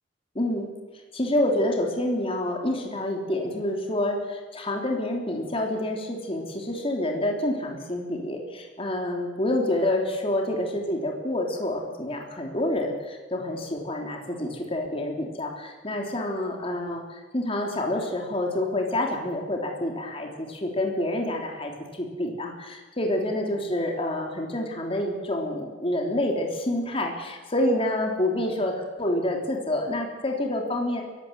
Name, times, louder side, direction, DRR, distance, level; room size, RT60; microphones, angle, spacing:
voice 1, 0.3-0.7 1.1-31.0, left 1 dB, 30° left, 1 dB, 3.3 m, -28 dB
23.5 x 16.0 x 7.6 m, 1.3 s
head